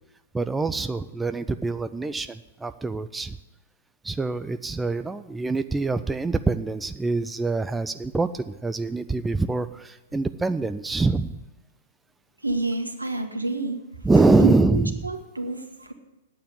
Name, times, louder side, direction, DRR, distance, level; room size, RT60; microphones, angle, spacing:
voice 1, 0.3-3.4 4.0-11.4 14.0-14.9, right 3 dB, 10° right, 11 dB, 0.4 m, -24 dB
voice 2, 12.4-13.8 14.4-15.9, right 2 dB, 85° right, 5 dB, 1.6 m, -28 dB
9.4 x 8.6 x 9.4 m, 1.0 s
figure-of-eight pair, 105°, 0 cm